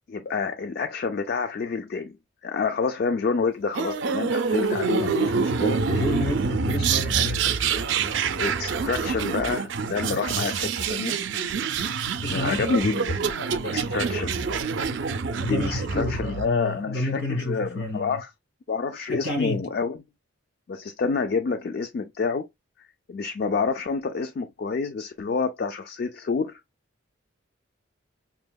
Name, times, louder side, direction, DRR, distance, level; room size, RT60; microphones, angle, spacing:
voice 1, 0.1-2.2 2.4-5.8 8.4-11.2 12.3-13.2 13.6-14.4 15.4-18.3 18.7-20.0 20.7-22.5 22.8-26.6, left 4 dB, 50° left, 0.3 m, -28 dB
sound 1, 3.7-16.5, right 5 dB, 65° right, 0.4 m, -26 dB
voice 2, 5.9-7.5 12.2-12.6 15.4-18.2 19.1-19.7, left 1 dB, 70° left, 2.2 m, -30 dB
5.5 x 2.7 x 2.2 m
head